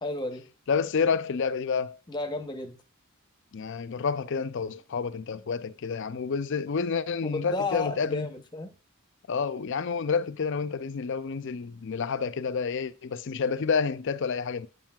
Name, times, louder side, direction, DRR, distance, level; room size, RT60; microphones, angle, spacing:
voice 1, 0.0-0.5 2.1-2.8 7.2-8.7, left 2 dB, 20° left, 0.8 m, -33 dB
voice 2, 0.7-2.0 3.5-8.3 9.3-14.7, left 5 dB, 55° left, 0.4 m, -29 dB
8.1 x 7.4 x 2.3 m
head